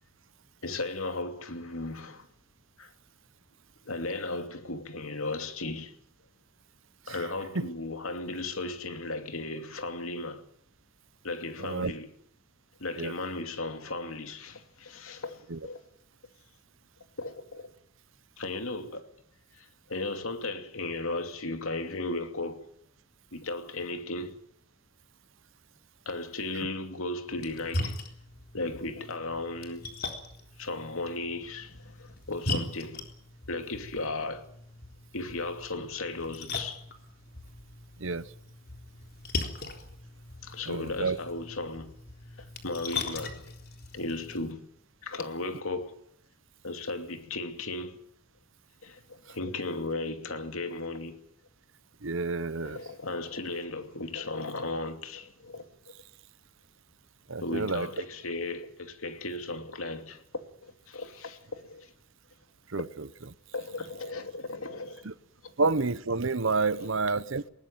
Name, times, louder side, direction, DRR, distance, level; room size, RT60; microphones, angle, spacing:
voice 1, 0.6-2.3 2.8-2.9 3.9-5.9 7.1-10.5 11.2-12.1 12.8-15.8 17.2-17.7 18.4-19.1 19.6-22.7 23.3-24.4 26.1-28.0 28.5-29.9 30.6-33.1 33.5-34.5 35.1-36.8 40.4-41.9 42.4-43.5 43.9-44.7 45.0-45.9 46.6-48.0 48.8-51.2 52.5-55.7 57.4-60.2 60.6-61.9 63.5-65.1 65.4-65.5 66.8-67.0, left 2 dB, 75° left, 2.7 m, -36 dB
Splash splatter, 27.3-44.4, left 2 dB, 45° left, 3.8 m, -39 dB
voice 2, 40.7-41.2 52.0-52.8 57.3-57.9 62.7-62.8 65.0-65.1 65.6-67.5, right 3 dB, 65° right, 1.0 m, -29 dB
20.5 x 19.5 x 9.1 m
head